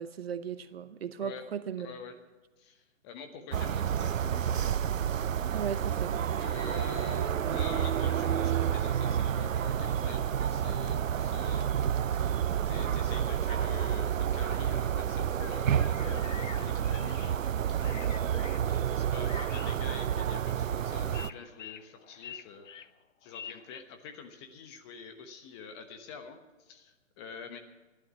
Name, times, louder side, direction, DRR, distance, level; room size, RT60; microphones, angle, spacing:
voice 1, 0.0-1.9 5.5-6.2, right 8 dB, 50° right, 13 dB, 0.8 m, -36 dB
voice 2, 1.8-2.2 2.6-4.7 6.4-11.7 12.7-17.9 18.7-22.7 23.2-27.6, left 5 dB, 20° left, 7 dB, 1.1 m, -46 dB
sound 1, 3.5-21.3, right 9 dB, 80° right, 0.6 m, -29 dB
sound 2, 15.1-23.8, left 7 dB, 70° left, 0.8 m, -48 dB
15.0 x 11.5 x 5.8 m, 1.2 s
figure-of-eight pair, 140°, 38 cm